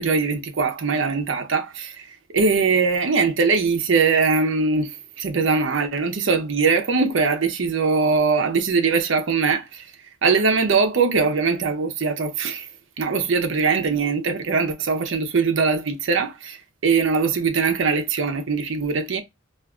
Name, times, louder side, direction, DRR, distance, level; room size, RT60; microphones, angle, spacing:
voice 1, 0.0-2.1 2.3-9.8 10.2-12.7 13.0-16.6 16.8-19.2, right 4 dB, 65° right, 0.6 m, -21 dB
2.5 x 2.3 x 3.6 m
head